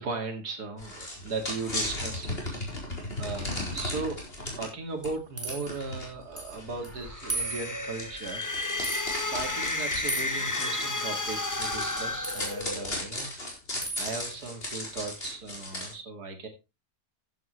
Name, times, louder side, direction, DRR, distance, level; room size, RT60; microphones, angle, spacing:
voice 1, 0.0-2.8 3.2-4.2 4.6-8.5 9.2-13.3 14.0-16.5, right 3 dB, 70° right, 5 dB, 2.9 m, -37 dB
sound 1, 0.8-4.7 5.0-5.1 5.5-15.9, left 1 dB, 35° left, 4.7 m, -37 dB
sound 2, 5.0-5.7 6.4-6.6 6.8-6.9 7.3-8.0 8.8-9.0 10.1-10.4 12.2-12.6 13.8-14.1, right 2 dB, 10° right, 3.6 m, -35 dB
sound 3, 7.0-13.1, left 2 dB, 15° left, 0.7 m, -32 dB
14.5 x 9.0 x 3.2 m, 0.26 s
omnidirectional pair, 1.8 m